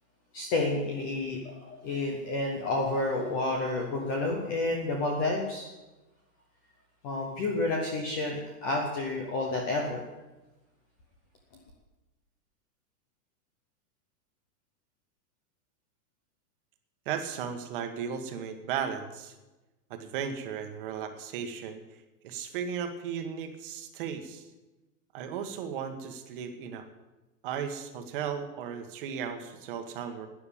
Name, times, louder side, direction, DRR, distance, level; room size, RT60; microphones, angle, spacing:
voice 1, 0.3-5.7 7.0-10.0, left 2 dB, 15° left, 1 dB, 0.6 m, -30 dB
voice 2, 17.0-19.3 19.9-21.8 22.2-24.4 25.1-26.8 27.4-30.3, right 7 dB, 35° right, 7 dB, 1.4 m, -35 dB
12.0 x 9.3 x 8.6 m, 1.1 s
supercardioid pair, 170°, 48 cm